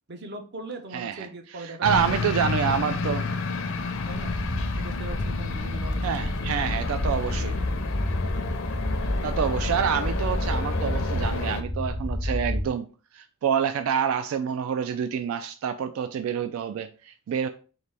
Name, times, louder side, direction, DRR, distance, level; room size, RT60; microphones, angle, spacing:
voice 1, 0.1-3.3 4.1-4.3 4.8-6.8, right 1 dB, 55° right, 0.7 m, -40 dB
voice 2, 0.9-1.3 1.5-3.3 6.0-7.6 9.2-12.9 13.1-17.5, right 7 dB, 85° right, 0.3 m, -27 dB
sound 1, 1.8-11.6, left 4 dB, 80° left, 0.5 m, -31 dB
sound 2, 4.1-12.7, left 1 dB, 5° left, 0.3 m, -29 dB
4.0 x 3.0 x 3.3 m
head